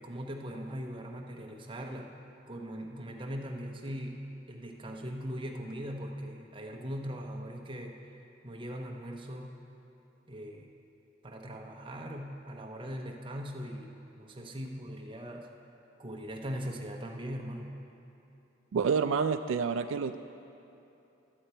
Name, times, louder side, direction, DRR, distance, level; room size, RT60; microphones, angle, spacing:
voice 1, 0.0-2.1 2.5-9.5 10.3-10.7 11.2-15.5 16.0-17.7, equal, 25° right, 1 dB, 0.8 m, -40 dB
voice 2, 18.7-20.2, right 5 dB, 80° right, 9 dB, 0.3 m, -28 dB
12.5 x 8.0 x 4.4 m, 2.8 s
head